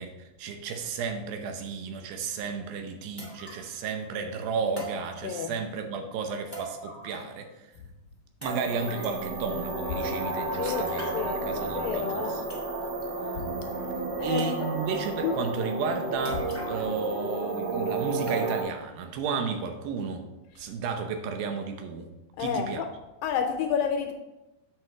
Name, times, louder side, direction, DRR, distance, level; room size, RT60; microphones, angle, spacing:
voice 1, 0.0-7.7 8.4-12.4 14.2-20.2 20.6-22.1 22.4-22.8, right 5 dB, 90° right, 5 dB, 2.7 m, -33 dB
sound 1, 2.4-2.5 3.2-3.8 4.7-5.6 6.5-7.4 7.7-7.8 8.4-9.2 10.6-11.3 12.1-12.2 12.5-13.0 13.4-13.5 14.4-15.0 16.2-17.0 17.3-17.4 18.3-18.8 19.2-19.3 20.0-20.1, right 3 dB, 20° right, 0.3 m, -42 dB
sound 2, 7.7-12.7 13.3-15.7 16.3-18.3 18.8-18.9, left 6 dB, 55° left, 1.6 m, -45 dB
sound 3, 8.4-18.6, right 2 dB, 60° right, 2.7 m, -32 dB
voice 2, 11.1-12.4 14.2-14.7 15.2-15.3 22.4-22.9 23.2-24.1, left 7 dB, 80° left, 5 dB, 2.3 m, -30 dB
7.7 x 4.9 x 4.8 m, 1.0 s
omnidirectional pair, 4.1 m